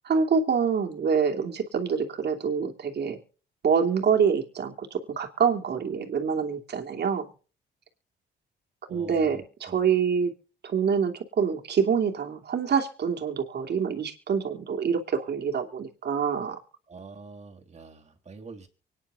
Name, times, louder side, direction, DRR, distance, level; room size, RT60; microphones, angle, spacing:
voice 1, 0.0-3.2 3.6-7.3 8.9-10.3 10.6-16.6, right 6 dB, 55° right, 3 dB, 2.7 m, -26 dB
voice 2, 8.9-9.8 16.9-18.7, right 3 dB, 35° right, 3 dB, 3.2 m, -45 dB
24.5 x 10.0 x 2.5 m, 0.36 s
cardioid pair, 90°, 20 cm